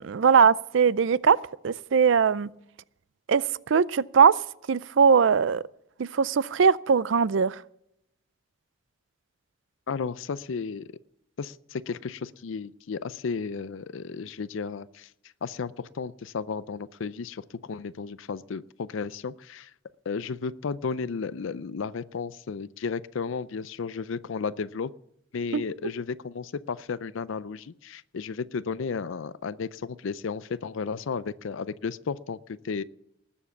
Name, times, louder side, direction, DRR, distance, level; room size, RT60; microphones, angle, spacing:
voice 1, 0.0-1.4 1.6-2.5 3.3-4.3 4.7-5.6 6.0-7.6 25.5-25.7, right 6 dB, 70° right, 0.4 m, -21 dB
voice 2, 9.9-10.8 11.4-15.1 15.4-19.7 20.1-24.9 25.3-32.4 32.6-32.8, left 5 dB, 75° left, 0.4 m, -33 dB
19.5 x 7.3 x 7.1 m
head